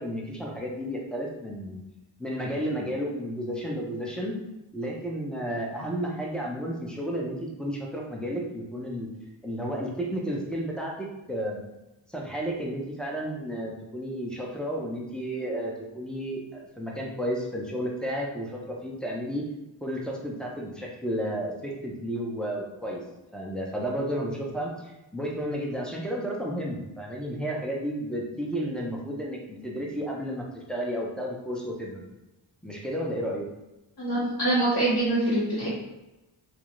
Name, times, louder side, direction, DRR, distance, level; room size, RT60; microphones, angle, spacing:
voice 1, 0.0-1.8 2.2-4.4 4.7-9.1 9.4-11.6 12.1-19.4 19.8-23.0 23.3-32.0 32.6-33.5, equal, ahead, -3 dB, 0.6 m, -32 dB
voice 2, 34.0-35.7, right 2 dB, 50° left, -7 dB, 0.9 m, -24 dB
2.4 x 2.1 x 3.0 m, 0.99 s
cardioid pair, 40°, 49 cm